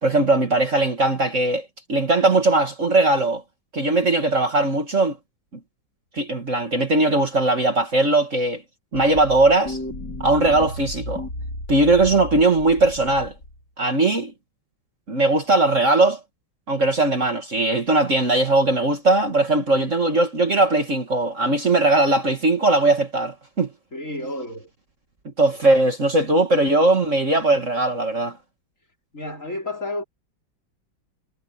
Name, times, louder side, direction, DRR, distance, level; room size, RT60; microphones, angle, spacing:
voice 1, 0.0-3.4 3.7-5.2 6.1-8.6 8.9-9.8 10.2-11.2 11.7-13.3 13.8-14.3 15.1-16.2 16.7-23.7 25.3-28.4, right 2 dB, 40° right, 2.2 m, -19 dB
sound 1, 8.9-13.6, left 1 dB, 55° left, 6.0 m, -34 dB
voice 2, 23.9-24.7 25.7-25.8 29.1-30.0, left 2 dB, 40° left, 4.8 m, -31 dB
omnidirectional pair, 2.1 m